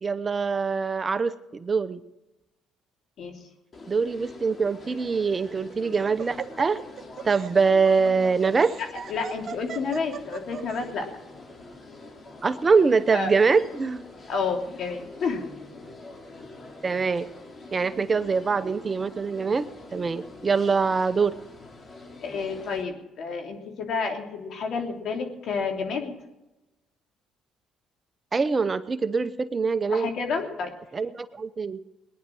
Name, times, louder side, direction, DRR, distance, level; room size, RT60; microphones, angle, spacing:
voice 1, 0.0-2.0 3.9-6.8 7.2-8.7 12.4-14.0 16.8-17.3 17.7-19.7 19.9-21.3 28.3-30.1 30.9-31.8, right 5 dB, 30° right, 13 dB, 0.8 m, -24 dB
sound 1, 3.7-22.8, left 2 dB, 40° left, 3.1 m, -45 dB
Laughter, 5.3-10.8, right 7 dB, 50° right, 1.2 m, -38 dB
voice 2, 9.1-11.1 13.1-13.3 14.3-15.4 22.2-26.1 29.9-30.7, left 5 dB, 60° left, 3 dB, 3.0 m, -30 dB
19.5 x 10.5 x 6.3 m, 1.0 s
supercardioid pair, 80°, 0 cm